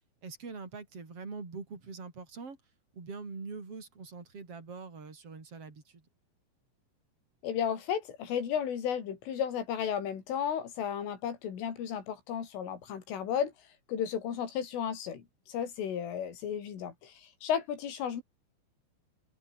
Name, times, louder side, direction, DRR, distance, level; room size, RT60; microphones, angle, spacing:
voice 1, 0.2-2.6 2.9-6.0, right 4 dB, 30° right, 5.9 m, -43 dB
voice 2, 7.4-13.5 13.9-18.2, left 8 dB, 85° left, 6.3 m, -34 dB
omnidirectional pair, 5.6 m